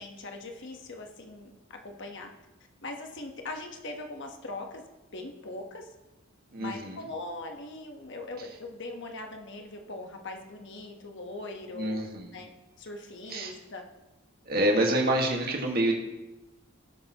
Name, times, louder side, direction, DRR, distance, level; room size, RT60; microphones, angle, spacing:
voice 1, 0.0-2.3 2.8-4.8 5.1-5.9 6.6-12.0 12.3-12.5 12.8-13.8 14.9-15.0, left 2 dB, 60° left, 3 dB, 1.2 m, -41 dB
voice 2, 6.5-7.0 11.7-12.4 13.3-13.5 14.4-15.9, right 1 dB, 50° right, 0 dB, 1.7 m, -27 dB
17.5 x 6.7 x 3.0 m, 1.1 s
head